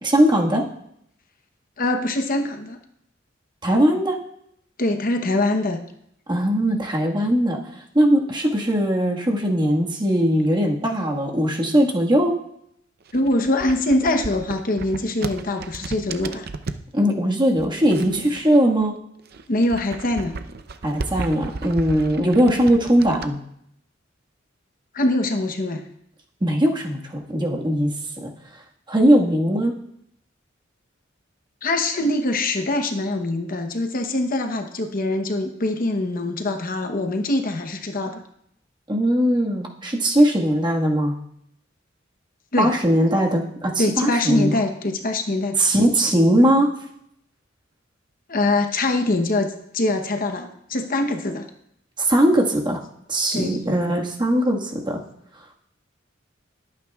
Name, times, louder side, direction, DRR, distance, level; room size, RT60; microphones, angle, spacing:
voice 1, 0.0-0.6 3.6-4.2 6.3-7.6 7.9-12.4 16.9-18.9 20.8-23.4 26.4-27.9 28.2-28.3 28.9-29.7 38.9-41.1 42.6-44.5 45.6-46.7 52.0-52.8 53.1-55.0, equal, 25° right, -1 dB, 1.6 m, -19 dB
voice 2, 1.8-2.8 4.8-5.8 13.1-16.5 19.5-20.3 24.9-25.8 31.6-38.2 42.5-42.7 43.8-45.6 48.3-51.5 53.3-53.6, left 2 dB, 45° left, 6 dB, 0.9 m, -23 dB
sound 1, 13.0-16.9 17.6-18.9 19.2-23.3, right 3 dB, 55° right, 0.6 m, -34 dB
21.5 x 9.0 x 2.4 m, 0.74 s
head